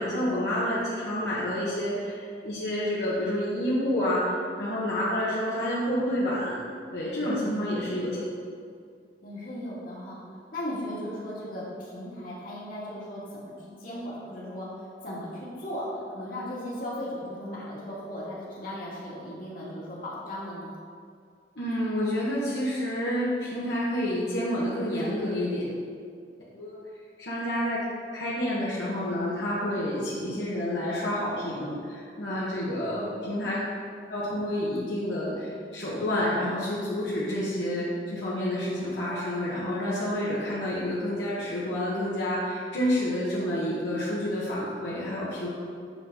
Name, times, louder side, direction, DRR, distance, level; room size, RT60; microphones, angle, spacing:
voice 1, 0.0-6.6 6.9-8.2 21.6-25.6 26.5-26.7 27.2-27.8 28.1-33.6 34.1-45.5, left 1 dB, 70° left, -9 dB, 1.5 m, -29 dB
voice 2, 7.4-8.3 9.2-10.2 10.5-20.7 32.5-33.3, left 1 dB, 50° left, -6 dB, 2.2 m, -37 dB
8.9 x 6.0 x 3.9 m, 2.2 s
head